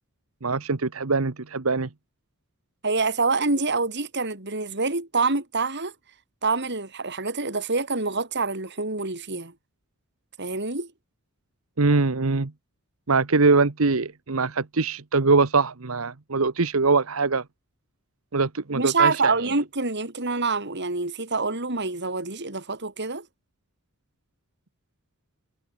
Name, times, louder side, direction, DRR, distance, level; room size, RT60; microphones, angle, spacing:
voice 1, 0.4-1.9 11.8-12.5 13.1-17.4 18.3-19.3, right 4 dB, 85° right, 1.1 m, -22 dB
voice 2, 2.8-5.9 6.4-9.5 10.4-10.9 18.7-23.3, right 3 dB, 55° right, 5.1 m, -26 dB
head